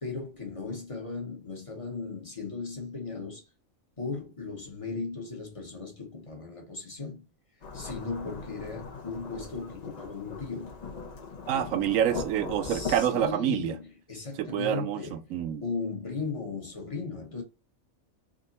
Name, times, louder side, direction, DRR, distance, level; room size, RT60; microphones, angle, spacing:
voice 1, 0.0-3.4 4.0-7.3 7.7-10.8 11.5-11.9 12.6-15.2 15.6-17.4, left 4 dB, 25° left, 1.0 m, -37 dB
Thunderstorm / Rain, 7.6-13.3, left 4 dB, 50° left, 0.5 m, -40 dB
voice 2, 11.5-13.8 14.4-15.6, right 10 dB, 75° right, 0.9 m, -27 dB
3.6 x 2.5 x 4.0 m
omnidirectional pair, 1.4 m